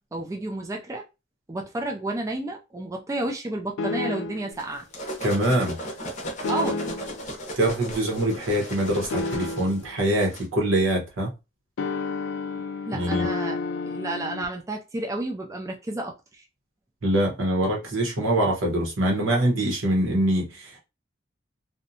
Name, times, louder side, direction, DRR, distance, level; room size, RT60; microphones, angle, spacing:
voice 1, 0.1-1.0 1.5-4.8 6.5-7.1 12.9-16.4, right 2 dB, 15° right, 0.3 m, -31 dB
sound 1, 3.8-4.6 6.4-7.2 9.1-9.9 11.8-14.5, left 3 dB, 75° left, 0.4 m, -30 dB
sound 2, 4.6-10.5, equal, 40° left, 0.6 m, -36 dB
voice 2, 5.2-5.8 7.6-11.3 12.9-13.2 17.0-20.8, right 1 dB, 85° right, 1.0 m, -24 dB
2.6 x 2.1 x 2.6 m
head